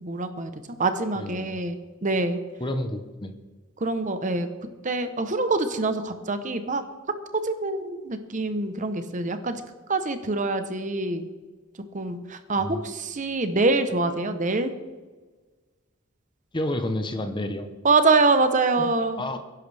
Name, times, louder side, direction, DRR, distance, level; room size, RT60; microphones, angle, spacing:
voice 1, 0.0-2.4 3.8-4.5 4.8-6.8 7.4-9.6 9.9-11.2 11.9-14.7 17.8-19.2, right 3 dB, 35° right, 9 dB, 0.9 m, -25 dB
voice 2, 1.2-1.6 2.6-3.3 12.6-12.8 16.5-17.7 18.8-18.9 19.2-19.4, left 1 dB, 20° left, 8 dB, 0.8 m, -30 dB
21.0 x 10.5 x 3.4 m, 1.3 s
head